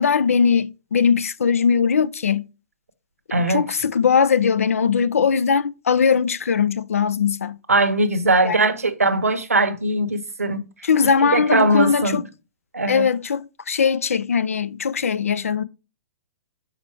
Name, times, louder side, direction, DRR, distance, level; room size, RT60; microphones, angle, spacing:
voice 1, 0.0-2.5 3.5-7.6 8.4-8.6 10.8-12.2 12.9-15.6, left 6 dB, 75° left, 0.4 m, -20 dB
voice 2, 3.3-3.6 7.7-10.6 11.2-12.2 12.7-13.0, right 2 dB, 85° right, 0.9 m, -20 dB
5.9 x 4.3 x 4.4 m
figure-of-eight pair, 115°, 8 cm